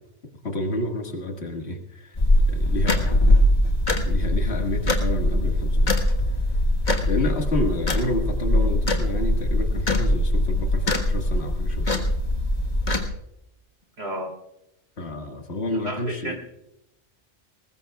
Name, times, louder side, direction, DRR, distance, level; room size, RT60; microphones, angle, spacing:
voice 1, 0.4-2.2 2.5-3.2 4.0-6.0 7.0-12.0 15.0-16.3, left 1 dB, 65° left, 3 dB, 2.0 m, -29 dB
sound 1, 2.1-13.1, left 1 dB, 40° left, 1.6 m, -22 dB
voice 2, 14.0-14.3 15.8-16.4, right 1 dB, 60° right, 2 dB, 3.3 m, -31 dB
22.0 x 19.0 x 2.3 m, 0.84 s
omnidirectional pair, 1.2 m